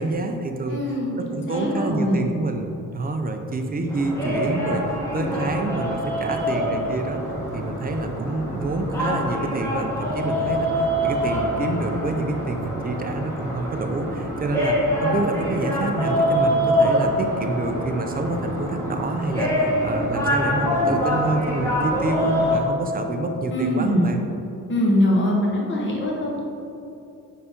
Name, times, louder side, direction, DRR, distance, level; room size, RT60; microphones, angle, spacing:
voice 1, 0.0-0.8 1.2-2.7 2.9-4.8 5.1-7.2 7.5-14.8 15.0-24.2, right 2 dB, 25° right, 5 dB, 0.4 m, -27 dB
voice 2, 0.7-2.2 23.5-24.1 24.7-26.4, left 1 dB, 35° left, -2 dB, 1.0 m, -22 dB
sound 1, 3.9-22.6, equal, 10° left, 1.1 m, -25 dB
4.9 x 4.8 x 5.0 m, 2.7 s
wide cardioid pair, 165°, 34 cm